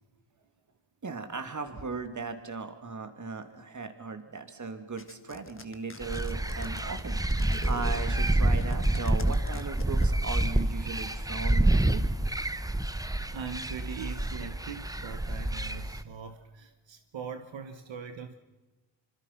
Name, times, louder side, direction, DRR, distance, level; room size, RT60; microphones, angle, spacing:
voice 1, 1.0-12.0, right 4 dB, 40° right, 7 dB, 2.7 m, -38 dB
sound 1, 5.0-10.4, left 4 dB, 25° left, 1.6 m, -43 dB
sound 2, 6.0-16.0, right 1 dB, 10° right, 0.9 m, -28 dB
voice 2, 13.3-18.4, right 6 dB, 75° right, 8 dB, 1.5 m, -41 dB
25.5 x 25.5 x 6.0 m, 1.1 s
wide cardioid pair, 110°, 45 cm